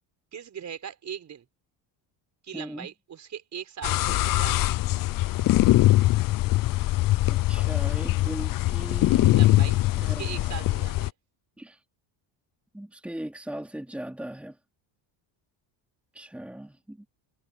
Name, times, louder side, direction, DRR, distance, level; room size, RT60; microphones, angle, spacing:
voice 1, 0.3-1.5 2.4-4.7 9.3-11.1, right 8 dB, 35° right, 5.5 m, -40 dB
voice 2, 2.5-2.9 7.3-9.4 9.9-10.6 11.6-11.8 12.7-14.6 16.1-17.1, right 1 dB, 5° right, 2.8 m, -39 dB
sound 1, 3.8-11.1, left 17 dB, 45° left, 0.6 m, -22 dB
cardioid pair, 140°, 46 cm